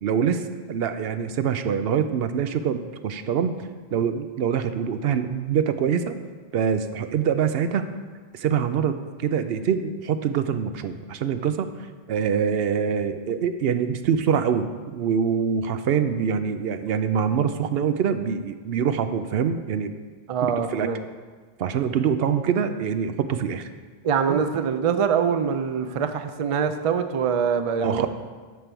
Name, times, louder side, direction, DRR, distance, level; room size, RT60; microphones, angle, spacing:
voice 1, 0.0-0.4 0.7-3.5 3.9-6.2 6.5-7.8 8.3-11.7 12.1-19.9 20.4-20.9 21.6-23.7 24.3-24.4 27.8-28.1, right 7 dB, 75° right, 10 dB, 0.8 m, -24 dB
voice 2, 20.3-21.0 24.0-28.1, right 7 dB, 45° right, 9 dB, 0.4 m, -24 dB
9.5 x 4.6 x 6.8 m, 1.5 s
omnidirectional pair, 1.0 m